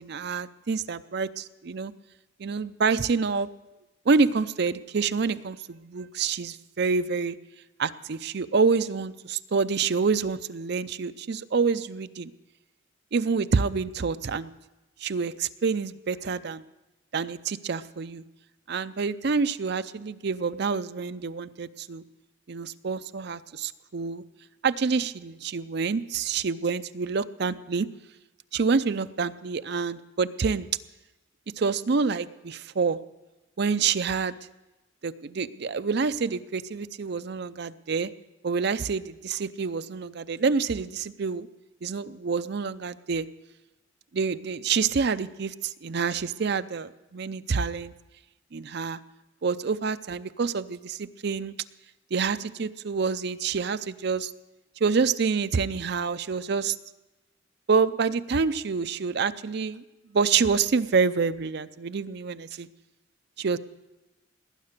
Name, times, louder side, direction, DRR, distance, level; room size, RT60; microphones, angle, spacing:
voice 1, 0.0-1.9 2.4-3.5 4.1-7.4 7.8-12.3 13.1-14.5 15.0-16.6 17.1-18.2 18.7-22.0 22.5-24.2 24.6-27.9 28.5-30.7 31.6-33.0 33.6-34.3 35.0-38.1 38.4-41.5 41.8-43.3 44.1-47.9 48.5-49.0 49.4-51.5 52.1-54.3 54.8-56.8 57.7-59.8 60.1-62.7 63.4-63.6, right 5 dB, 60° right, 13 dB, 0.5 m, -27 dB
19.0 x 9.7 x 6.6 m, 1.0 s
head